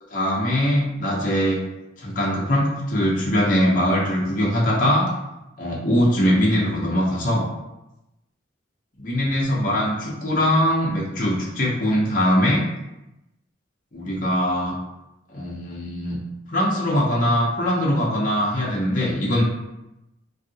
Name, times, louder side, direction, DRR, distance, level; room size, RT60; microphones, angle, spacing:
voice 1, 0.1-1.6 2.0-5.1 5.6-7.4 9.0-12.6 13.9-14.8 15.3-16.2 16.5-19.4, equal, 45° left, -5 dB, 0.7 m, -21 dB
3.2 x 2.7 x 2.8 m, 0.92 s
head